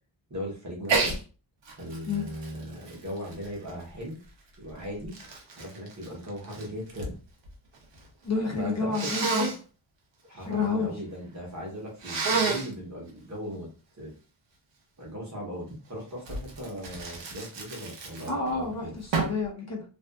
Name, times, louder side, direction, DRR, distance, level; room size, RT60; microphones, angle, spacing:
voice 1, 0.3-1.2 1.8-4.2 4.6-5.2 5.6-7.1 8.6-9.1 10.3-13.7 14.0-14.1 15.0-18.9, equal, 35° right, -2 dB, 0.9 m, -38 dB
Sneeze, 0.8-1.2 1.6-4.0 4.7-7.1 7.4-8.1 8.9-9.6 12.0-12.7 16.2-18.5 19.1-19.4, right 4 dB, 65° right, 0.7 m, -30 dB
voice 2, 8.2-9.5 10.4-10.9 18.3-19.8, left 4 dB, 35° left, -2 dB, 0.6 m, -29 dB
2.5 x 2.4 x 2.3 m, 0.36 s
wide cardioid pair, 125°, 47 cm